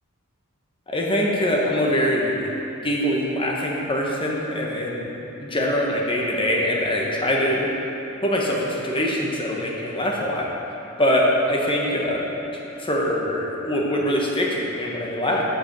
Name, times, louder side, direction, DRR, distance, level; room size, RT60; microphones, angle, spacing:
voice 1, 0.9-2.5 2.8-5.1 5.4-7.7 8.2-10.5 11.0-12.3 12.8-15.4, equal, 25° left, -2 dB, 1.0 m, -23 dB
7.4 x 5.2 x 6.7 m, 2.9 s
head